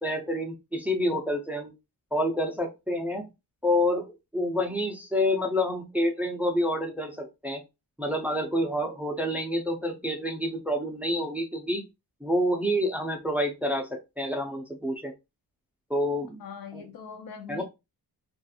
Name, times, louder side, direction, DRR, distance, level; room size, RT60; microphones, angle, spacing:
voice 1, 0.0-1.7 2.1-3.2 3.6-7.6 8.0-11.8 12.2-15.1 15.9-16.4 16.7-16.8 17.5-17.6, left 1 dB, 5° right, 0.4 m, -28 dB
voice 2, 16.4-17.6, left 6 dB, 65° left, 0.5 m, -41 dB
2.4 x 2.4 x 2.7 m
wide cardioid pair, 160°, 38 cm